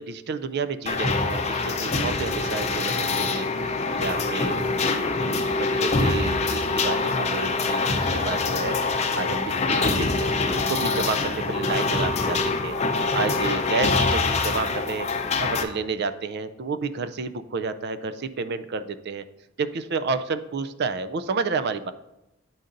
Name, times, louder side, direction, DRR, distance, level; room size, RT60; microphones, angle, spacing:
voice 1, 0.0-12.7 13.1-15.1 15.4-19.2 19.6-21.9, right 4 dB, 55° right, 12 dB, 0.4 m, -31 dB
sound 1, 0.9-15.6, left 3 dB, 35° left, 0.6 m, -24 dB
10.0 x 4.0 x 3.8 m, 0.94 s
head